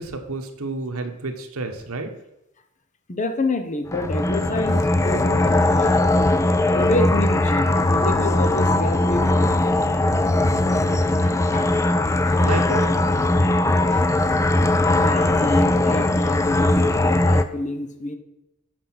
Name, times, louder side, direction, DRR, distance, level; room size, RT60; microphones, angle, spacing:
voice 1, 0.0-2.1 12.4-12.9, right 3 dB, 80° right, 6 dB, 1.1 m, -30 dB
voice 2, 3.1-5.9 6.7-9.6 11.2-11.7 12.2-12.4 13.9-14.1 14.9-18.2, left 2 dB, 35° left, 7 dB, 0.8 m, -28 dB
sound 1, 3.9-17.4, left 2 dB, 15° left, 0.3 m, -19 dB
7.7 x 5.1 x 5.8 m, 0.90 s
head